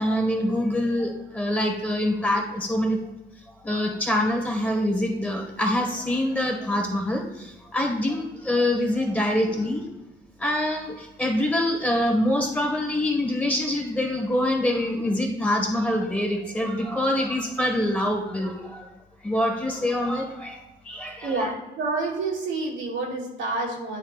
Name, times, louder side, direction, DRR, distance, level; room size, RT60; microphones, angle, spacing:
voice 1, 0.0-3.0 3.5-9.8 10.4-18.9 19.2-21.5, left 1 dB, 5° left, 2 dB, 1.6 m, -25 dB
voice 2, 21.8-24.0, right 3 dB, 85° right, -3 dB, 2.3 m, -28 dB
9.9 x 4.0 x 4.1 m, 1.0 s
cardioid pair, 90°, 20 cm